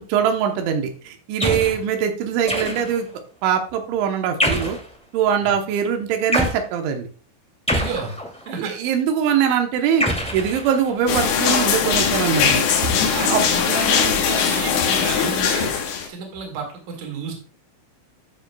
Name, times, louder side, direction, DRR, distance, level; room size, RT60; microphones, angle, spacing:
voice 1, 0.1-3.1 3.4-4.8 5.1-7.1 8.6-10.1 10.3-12.9 13.3-13.4, right 8 dB, 90° right, 4 dB, 3.4 m, -22 dB
sound 1, 1.4-1.8 2.5-3.1 4.4-4.9 6.3-6.6 7.7-8.5 10.0-11.1, equal, 5° left, 0.4 m, -24 dB
voice 2, 7.7-8.2 8.5-8.7 13.1-15.7 16.1-17.3, right 5 dB, 50° right, 2 dB, 2.8 m, -31 dB
sound 2, 11.1-16.1, left 7 dB, 75° left, 3.3 m, -20 dB
12.5 x 6.6 x 2.3 m, 0.37 s
omnidirectional pair, 5.2 m